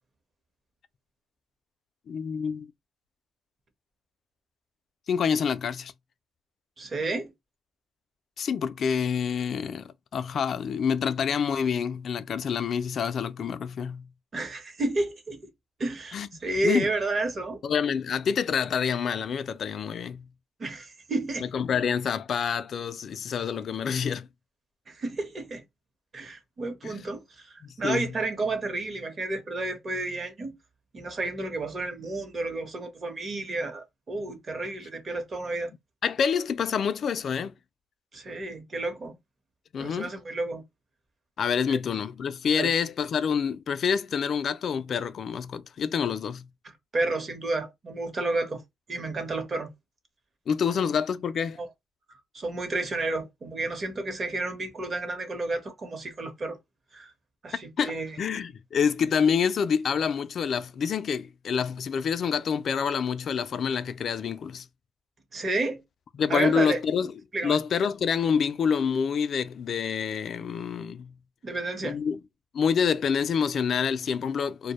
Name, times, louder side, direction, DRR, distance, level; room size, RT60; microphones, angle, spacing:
voice 1, 2.1-2.7 5.1-5.9 8.4-14.1 16.1-16.3 16.6-16.9 17.6-20.2 21.4-24.3 26.8-27.0 27.6-28.1 36.0-37.6 39.7-40.2 41.4-46.5 50.5-51.6 57.8-64.7 66.1-67.1 67.4-71.1 71.8-72.2 72.5-74.7, left 7 dB, 55° left, 0.3 m, -27 dB
voice 2, 6.8-7.3 14.3-15.4 15.8-17.6 20.6-21.5 24.9-25.6 26.1-30.6 30.9-35.7 38.1-39.1 39.8-40.6 41.7-41.8 42.6-42.7 46.9-48.6 48.9-49.7 51.6-51.7 52.3-56.6 56.9-57.1 57.4-58.2 65.3-65.8 66.3-66.8 67.3-67.6 71.4-72.0, right 2 dB, 40° right, 0.8 m, -31 dB
2.1 x 2.0 x 2.9 m
cardioid pair, 90°, 0 cm